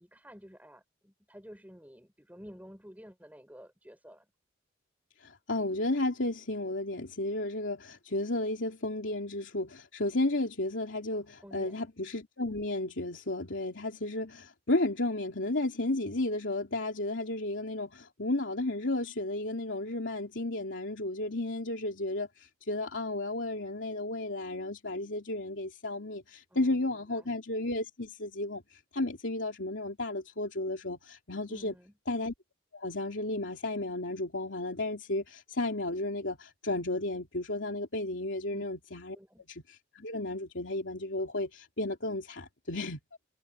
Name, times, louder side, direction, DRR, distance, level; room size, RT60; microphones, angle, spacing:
voice 1, 0.0-4.3 11.4-11.8 26.5-26.7 27.1-27.3 31.5-31.9 38.5-38.6 39.1-39.4, equal, 10° right, 4.8 m, -51 dB
voice 2, 5.2-31.7 32.1-32.3 32.7-39.2 39.5-43.0, left 2 dB, 80° left, 2.9 m, -33 dB
head